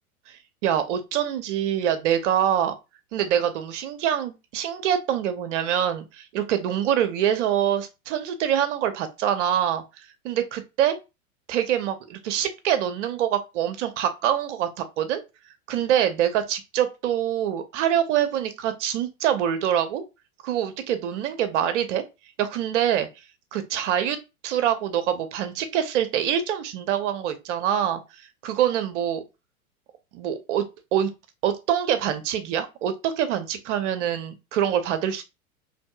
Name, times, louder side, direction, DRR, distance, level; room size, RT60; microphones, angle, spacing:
voice 1, 0.3-2.7 3.1-9.8 10.2-11.0 11.5-15.2 15.7-20.0 20.4-22.0 22.4-23.1 23.5-24.2 24.4-29.2 30.1-30.6 30.9-31.1 31.4-35.2, right 10 dB, 55° right, 0.8 m, -25 dB
4.3 x 3.3 x 2.3 m
hypercardioid pair, 105°, 44 cm